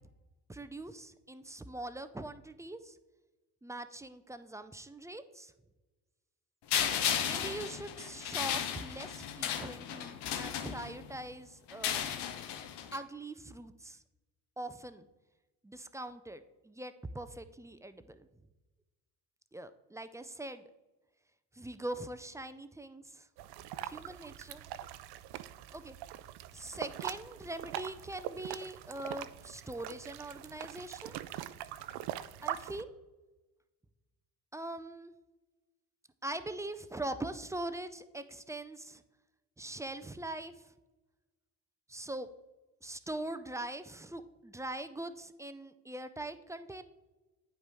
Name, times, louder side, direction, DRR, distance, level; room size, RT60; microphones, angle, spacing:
voice 1, 0.5-3.0 3.6-5.5 7.2-12.1 12.9-14.0 14.6-15.1 15.6-18.3 19.5-20.6 21.5-23.3 23.8-24.6 25.7-26.0 26.5-31.2 32.4-32.9 34.5-35.1 36.2-39.0 39.6-40.7 41.9-42.3 42.8-46.8, right 1 dB, 5° right, 11 dB, 0.4 m, -42 dB
sound 1, 6.7-11.2 11.7-13.0, left 9 dB, 60° left, 0.8 m, -35 dB
sound 2, 23.4-32.8, right 12 dB, 60° right, 0.5 m, -43 dB
9.3 x 5.0 x 3.5 m, 1.1 s
hypercardioid pair, 55°, 45 cm